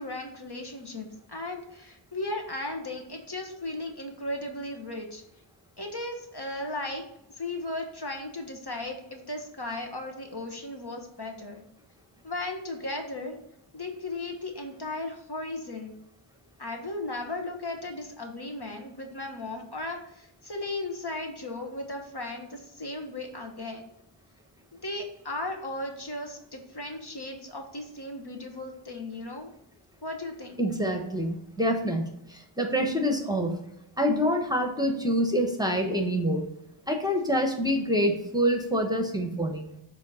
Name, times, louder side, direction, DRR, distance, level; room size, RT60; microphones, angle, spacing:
voice 1, 0.0-5.2 5.8-7.0 7.3-11.6 12.2-13.4 13.7-15.9 16.6-23.8 24.7-29.5 30.0-30.6, left 2 dB, 50° left, 3 dB, 1.1 m, -36 dB
voice 2, 30.6-33.5 34.0-36.4 36.9-39.7, equal, 10° right, 2 dB, 1.1 m, -26 dB
7.3 x 2.9 x 5.5 m, 0.85 s
wide cardioid pair, 50°, 50 cm